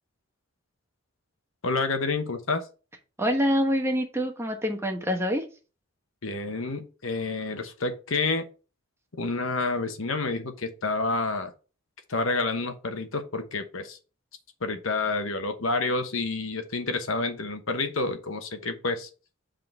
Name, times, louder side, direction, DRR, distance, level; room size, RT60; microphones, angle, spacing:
voice 1, 1.6-2.6 6.2-8.5 9.2-11.5 12.1-14.0 14.6-19.1, left 3 dB, 70° left, 8 dB, 1.0 m, -29 dB
voice 2, 3.2-5.4, equal, 10° right, 4 dB, 1.1 m, -25 dB
7.6 x 3.8 x 4.4 m, 0.34 s
head